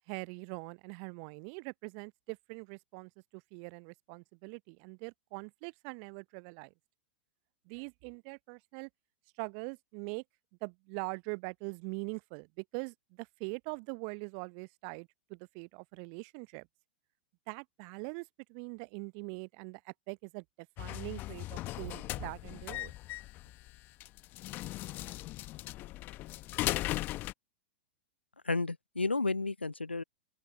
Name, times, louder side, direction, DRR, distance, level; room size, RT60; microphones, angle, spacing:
voice 1, 0.1-6.7 7.7-8.9 9.4-10.2 10.6-16.7 17.5-22.9, right 40 dB or more, 40° right, 0.7 m, -43 dB
sound 1, 20.8-27.3, left 17 dB, 35° left, 1.3 m, -38 dB
voice 2, 28.4-30.0, left 3 dB, 90° left, 0.4 m, -32 dB
open air
figure-of-eight pair, 95°, 6 cm